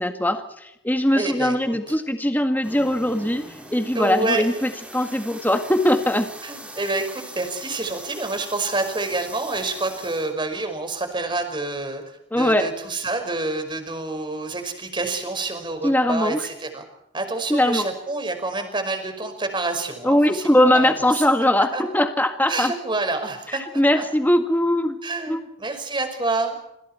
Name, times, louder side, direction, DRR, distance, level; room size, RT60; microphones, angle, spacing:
voice 1, 0.0-3.4 3.7-6.3 12.3-12.7 15.8-16.4 17.5-17.9 20.0-22.7 23.5-25.0 25.3-25.4, left 1 dB, 10° left, 6 dB, 1.8 m, -20 dB
voice 2, 1.2-1.8 4.0-4.4 6.4-12.0 12.4-16.8 17.1-21.1 21.7-21.8 22.5-24.0 25.0-26.6, right 2 dB, 25° right, 6 dB, 5.3 m, -28 dB
sound 1, 2.6-10.3, right 1 dB, 5° right, 5.3 m, -41 dB
27.0 x 27.0 x 4.5 m, 0.82 s
head